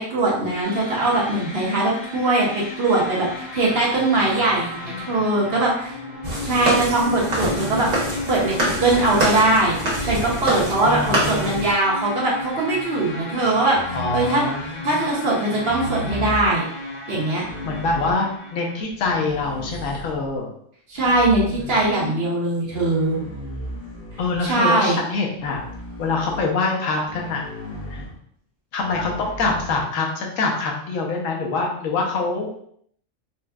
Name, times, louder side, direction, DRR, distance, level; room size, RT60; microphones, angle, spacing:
voice 1, 0.0-6.0 6.4-7.9 8.3-9.7 10.0-14.4 14.8-16.6 17.1-17.4 20.9-23.2 24.4-25.0, right 2 dB, 55° right, -4 dB, 1.0 m, -21 dB
sound 1, 0.6-18.8, left 2 dB, 30° left, 0.5 m, -34 dB
voice 2, 4.7-5.1 10.8-11.6 13.9-15.0 17.6-20.5 21.6-21.8 24.2-25.6 26.0-27.4 27.9-28.0 28.7-32.6, left 3 dB, 80° left, 0 dB, 1.1 m, -25 dB
sound 2, 6.2-11.7, right 1 dB, 80° right, 1.4 m, -25 dB
sound 3, 13.7-14.7 15.6-16.5 17.4-18.2 18.9-20.3 20.9-22.1 22.7-24.6 25.4-26.5 27.0-28.2 28.8-29.8, equal, 50° left, 1.0 m, -35 dB
4.2 x 2.2 x 2.3 m, 0.68 s
omnidirectional pair, 1.4 m